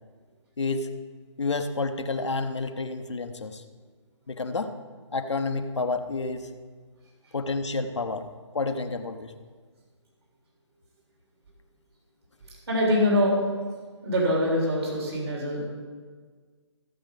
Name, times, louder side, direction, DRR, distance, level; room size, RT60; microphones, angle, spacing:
voice 1, 0.6-0.9 1.4-3.6 4.3-4.8 5.1-6.5 7.3-8.3 8.5-9.3, left 3 dB, 65° left, 7 dB, 0.9 m, -29 dB
voice 2, 12.7-13.3 14.0-15.7, left 1 dB, 55° right, -3 dB, 3.7 m, -24 dB
15.0 x 7.2 x 5.3 m, 1.5 s
figure-of-eight pair, 140°, 16 cm